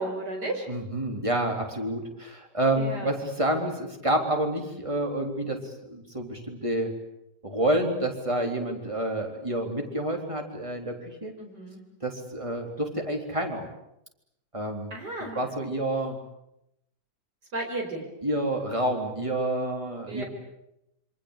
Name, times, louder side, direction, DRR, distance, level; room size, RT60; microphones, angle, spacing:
voice 1, 0.0-0.7 2.8-3.1 11.4-11.8 14.9-15.5 17.5-18.1 20.1-20.3, right 2 dB, 75° right, 2 dB, 5.8 m, -33 dB
voice 2, 0.7-5.6 5.9-6.9 7.4-11.3 12.0-13.7 14.5-14.9 15.3-16.2 18.2-20.2, right 1 dB, 20° right, 3 dB, 3.8 m, -28 dB
27.5 x 25.0 x 8.2 m, 0.83 s
omnidirectional pair, 1.8 m